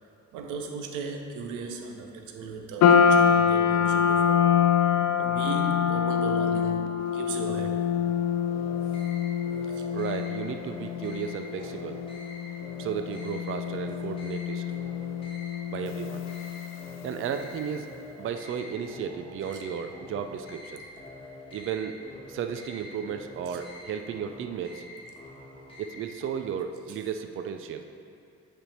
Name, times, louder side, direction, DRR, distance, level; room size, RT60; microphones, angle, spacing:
voice 1, 0.3-4.5 5.2-7.9 9.7-9.9 15.1-15.2 19.5-19.6 20.9-21.1 23.5-23.6 26.9-27.0, right 4 dB, 90° right, 4 dB, 0.7 m, -37 dB
sound 1, 2.8-17.2, left 7 dB, 60° left, 0.4 m, -25 dB
sound 2, 8.5-26.3, left 1 dB, 20° left, 1.5 m, -46 dB
voice 2, 9.9-12.0 12.8-14.6 15.7-16.2 17.0-17.9 18.2-20.9 21.5-21.9 22.3-24.8 25.8-27.8, right 7 dB, 45° right, 7 dB, 0.4 m, -34 dB
8.8 x 3.4 x 4.3 m, 2.4 s
cardioid pair, 90°, 30 cm